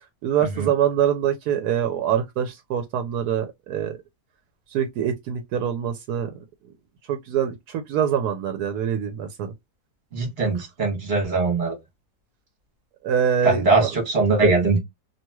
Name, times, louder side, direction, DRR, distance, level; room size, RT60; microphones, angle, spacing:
voice 1, 0.2-4.0 4.7-6.3 7.1-9.5 13.0-13.9, right 9 dB, 80° right, 1.1 m, -24 dB
voice 2, 10.1-11.8 13.4-14.8, right 3 dB, 40° right, 1.3 m, -21 dB
3.0 x 2.8 x 2.2 m
omnidirectional pair, 1.7 m